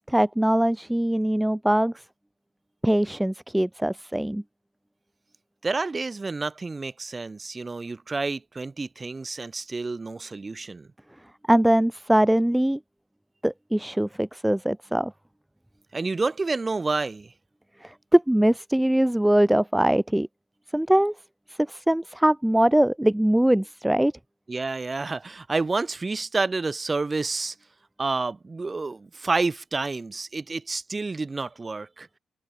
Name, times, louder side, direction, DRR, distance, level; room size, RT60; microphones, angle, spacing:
voice 1, 0.1-1.9 2.8-4.4 11.5-12.8 13.4-15.1 17.8-20.3 20.7-21.1 21.7-24.1, right 1 dB, 5° right, 0.3 m, -22 dB
voice 2, 5.6-10.9 15.9-17.3 24.5-27.5 28.0-32.1, right 3 dB, 25° right, 0.8 m, -29 dB
open air
cardioid pair, 90°, 0 cm